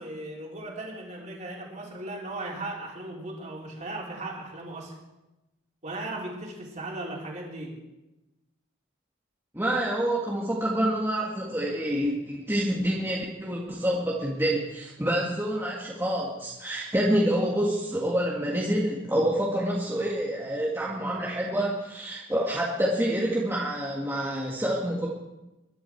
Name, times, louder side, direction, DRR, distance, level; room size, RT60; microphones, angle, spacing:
voice 1, 0.0-4.9 5.8-7.8, right 2 dB, 35° right, -2 dB, 3.7 m, -37 dB
voice 2, 9.5-25.1, right 1 dB, 10° right, -4 dB, 1.8 m, -27 dB
21.5 x 12.0 x 4.7 m, 0.99 s
head